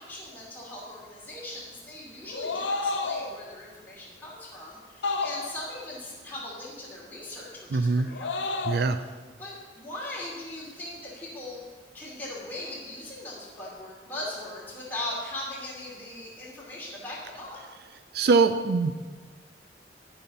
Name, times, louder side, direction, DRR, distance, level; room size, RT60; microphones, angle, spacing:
voice 1, 0.0-9.1 9.4-11.6 11.9-17.6, left 1 dB, 10° left, -6 dB, 2.8 m, -39 dB
sound 1, 2.3-3.4 5.0-5.8 8.1-8.9, left 3 dB, 85° left, 0.7 m, -30 dB
voice 2, 7.7-8.1 8.7-9.0 18.1-18.9, right 4 dB, 60° right, 10 dB, 0.4 m, -22 dB
13.0 x 5.7 x 5.3 m, 1.5 s
head